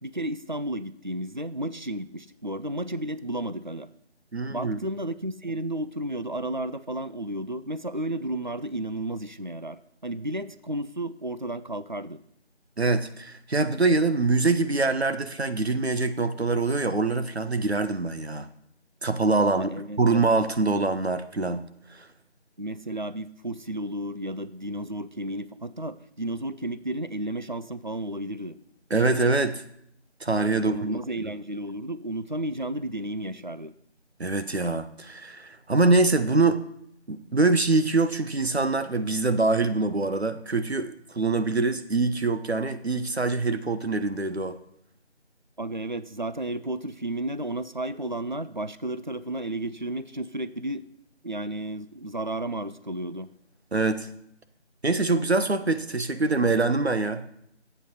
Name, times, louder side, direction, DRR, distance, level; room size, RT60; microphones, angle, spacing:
voice 1, 0.0-3.9 4.5-12.2 19.4-20.0 22.6-28.6 30.5-33.7 45.6-50.8 51.2-53.3, right 1 dB, 45° right, 15 dB, 0.5 m, -33 dB
voice 2, 4.3-4.8 12.8-18.5 19.0-19.7 20.0-22.0 28.9-29.6 30.2-31.3 34.2-36.6 37.1-44.6 53.7-54.1 54.8-57.2, right 3 dB, 65° right, 10 dB, 1.1 m, -24 dB
12.5 x 8.6 x 5.5 m, 0.72 s
figure-of-eight pair, 170°, 34 cm